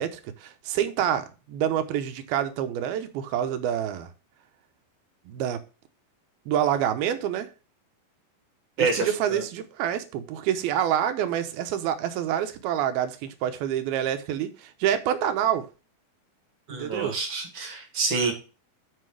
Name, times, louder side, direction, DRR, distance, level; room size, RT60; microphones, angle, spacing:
voice 1, 0.0-4.1 5.3-5.6 6.5-7.5 8.8-15.7 16.7-17.2, right 10 dB, 80° right, 2.8 m, -27 dB
voice 2, 8.8-9.4 16.7-18.3, right 4 dB, 40° right, 2.1 m, -27 dB
7.7 x 6.0 x 4.8 m
omnidirectional pair, 4.4 m